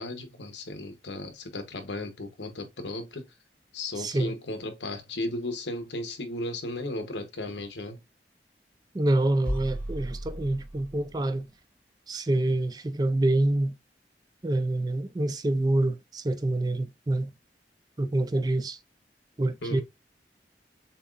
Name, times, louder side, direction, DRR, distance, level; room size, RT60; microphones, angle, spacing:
voice 1, 0.0-3.2 3.7-8.0 19.6-19.8, left 2 dB, 90° left, 1.1 m, -35 dB
voice 2, 4.0-4.3 8.9-11.5 12.1-13.8 14.4-17.3 18.0-18.8 19.4-19.8, right 2 dB, 20° right, 0.4 m, -26 dB
sound 1, 9.5-11.3, equal, 5° left, 1.0 m, -35 dB
6.9 x 3.0 x 2.5 m
head